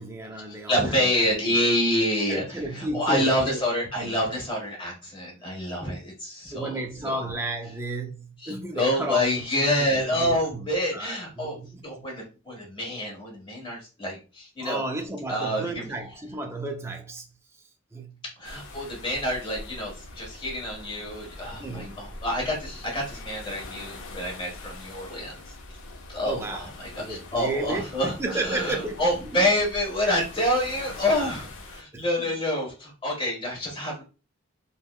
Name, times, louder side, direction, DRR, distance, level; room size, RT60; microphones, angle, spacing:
voice 1, 0.0-1.0 1.2-1.6 2.3-3.6 4.0-4.2 6.5-12.1 14.6-17.6 17.9-18.2 21.4-22.1 26.2-26.7 27.0-29.0 29.3-29.5 31.9-32.3, right 2 dB, 10° right, 0.4 m, -33 dB
voice 2, 0.7-7.2 8.4-11.5 11.8-14.8 15.3-15.9 18.4-25.4 26.1-26.7 26.9-34.0, left 1 dB, 25° left, 1.3 m, -27 dB
sound 1, 18.4-31.8, left 2 dB, 65° left, 0.6 m, -43 dB
3.5 x 2.2 x 2.2 m
head